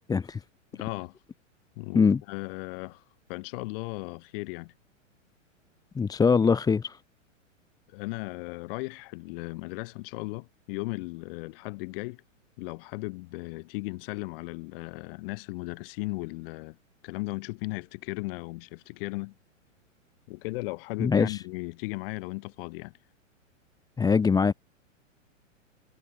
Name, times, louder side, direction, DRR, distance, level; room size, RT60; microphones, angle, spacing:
voice 1, 0.1-0.4 1.9-2.2 6.0-7.0 21.0-21.4 24.0-24.5, left 5 dB, 10° left, 1.0 m, -22 dB
voice 2, 0.7-1.2 1.8-3.0 3.3-4.7 7.9-12.2 12.6-16.8 17.0-19.3 20.3-22.9, left 25 dB, 45° left, 3.3 m, -36 dB
hypercardioid pair, 120°, 39 cm